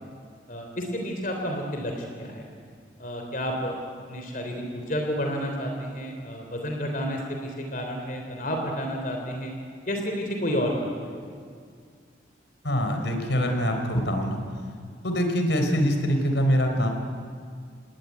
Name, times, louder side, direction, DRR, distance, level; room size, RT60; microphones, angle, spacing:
voice 1, 0.5-2.4 3.0-3.7 4.1-9.5 9.9-11.1, equal, 45° left, 2 dB, 3.4 m, -30 dB
voice 2, 12.6-14.4 15.0-16.9, equal, 75° left, 4 dB, 4.1 m, -24 dB
28.0 x 19.0 x 9.5 m, 2.2 s
head